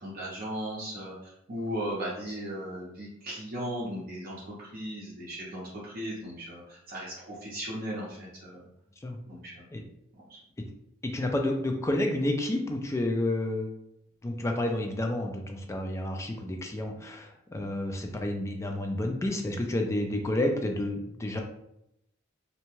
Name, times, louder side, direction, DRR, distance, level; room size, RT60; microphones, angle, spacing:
voice 1, 0.0-8.6 9.3-9.7 10.3-10.4, equal, 45° right, -7 dB, 0.7 m, -37 dB
voice 2, 11.0-13.7 14.2-21.4, left 1 dB, 15° left, 3 dB, 0.3 m, -30 dB
2.7 x 2.2 x 2.9 m, 0.80 s
head